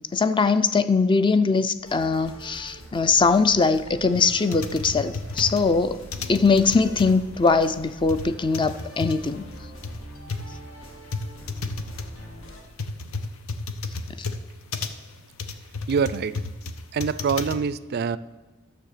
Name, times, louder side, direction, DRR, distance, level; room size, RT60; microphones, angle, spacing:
voice 1, 0.1-6.0 6.3-9.4, left 4 dB, 25° left, 12 dB, 0.4 m, -21 dB
sound 1, 1.8-12.6, equal, 70° left, 1.8 m, -44 dB
sound 2, 4.1-17.6, left 3 dB, 90° left, 0.8 m, -33 dB
voice 2, 15.9-16.4 16.9-18.2, right 6 dB, 50° right, 17 dB, 0.3 m, -25 dB
12.0 x 6.8 x 6.6 m, 1.2 s
head